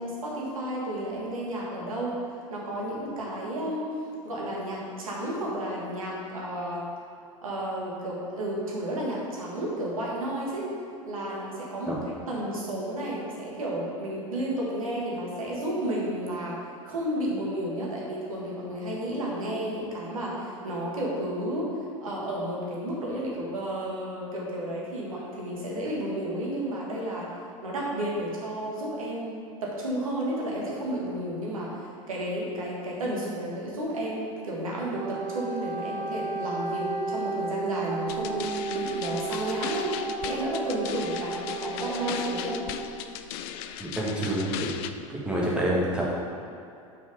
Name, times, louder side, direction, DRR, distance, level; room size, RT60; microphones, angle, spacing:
voice 1, 0.0-2.2 2.5-3.9 4.2-6.8 7.4-10.7 11.1-12.0 12.3-16.6 16.8-21.7 22.0-27.3 27.6-39.9 40.2-42.6, right 1 dB, 75° right, -4 dB, 1.7 m, -32 dB
Wind instrument woodwind instrument, 34.8-42.9, right 4 dB, 55° right, 0.7 m, -33 dB
sound 1, 38.1-44.9, left 10 dB, 45° left, 0.4 m, -37 dB
voice 2, 43.8-44.7 45.1-46.0, right 1 dB, 5° right, -6 dB, 1.8 m, -27 dB
6.0 x 5.4 x 5.1 m, 2.5 s
figure-of-eight pair, 80°, 18 cm